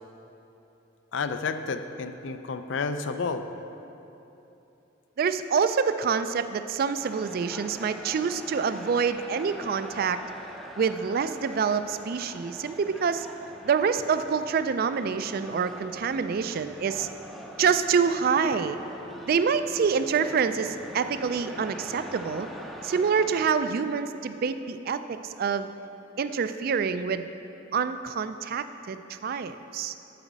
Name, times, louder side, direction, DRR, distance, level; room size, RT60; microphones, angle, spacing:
voice 1, 1.1-3.5, left 4 dB, 70° left, 9 dB, 0.5 m, -31 dB
voice 2, 5.2-10.2 10.8-13.3 13.6-17.1 17.6-18.8 19.3-22.5 22.8-25.7 26.2-27.3 27.7-29.9, right 6 dB, 50° right, 11 dB, 0.3 m, -26 dB
sound 1, 7.0-23.5, equal, ahead, 0.5 m, -44 dB
9.0 x 5.0 x 7.3 m, 3.0 s
head